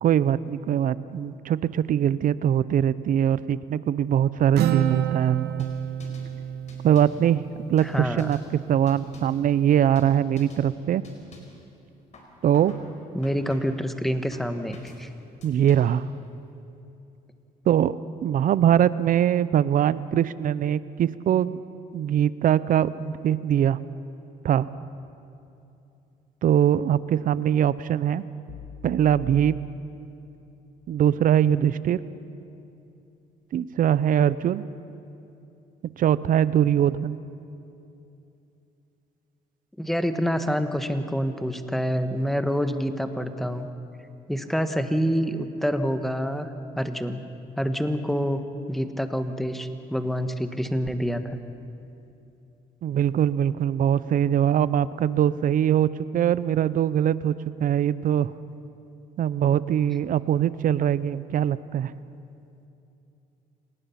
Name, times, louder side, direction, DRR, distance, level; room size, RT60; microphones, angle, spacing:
voice 1, 0.0-5.5 6.8-7.4 7.7-11.0 12.4-12.7 15.4-16.1 17.7-21.6 21.9-23.8 24.4-24.7 26.4-28.2 28.8-29.6 30.9-32.0 33.5-34.6 36.0-37.2 52.8-58.3 59.2-61.9, right 10 dB, 55° right, 17 dB, 0.6 m, -22 dB
Acoustic guitar, 4.6-8.2, right 10 dB, 80° right, 1.1 m, -28 dB
sound 1, 5.6-6.3 6.7-7.2 7.8-8.5 8.9-9.4 10.0-10.1 10.4-10.7 11.0-11.6 12.1-12.9 13.2-13.8 14.3-15.0 15.4-16.0, left 2 dB, 45° left, 4.4 m, -49 dB
voice 2, 7.8-8.3 13.1-15.1 39.8-43.7 44.3-46.5 46.7-47.2 47.6-48.4 48.7-51.4, equal, ahead, 8 dB, 1.4 m, -27 dB
sound 2, 28.5-30.6, left 3 dB, 65° left, 1.6 m, -43 dB
27.0 x 19.0 x 5.9 m, 2.8 s
cardioid pair, 100°, 17 cm